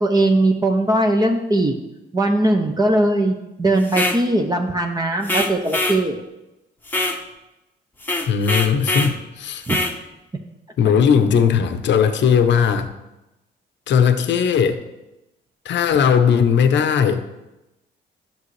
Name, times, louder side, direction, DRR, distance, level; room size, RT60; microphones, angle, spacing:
voice 1, 0.0-1.7 2.1-6.2 9.7-9.8, right 1 dB, 20° right, 2 dB, 0.8 m, -19 dB
sound 1, 3.8-4.2 5.2-6.0 6.9-7.2 8.0-9.2 9.6-10.0, left 2 dB, 10° left, 1.0 m, -23 dB
voice 2, 8.3-9.6 10.8-12.9 13.9-14.8 15.6-17.2, left 7 dB, 65° left, 8 dB, 0.8 m, -17 dB
11.0 x 6.8 x 3.3 m, 0.96 s
cardioid pair, 90°, 20 cm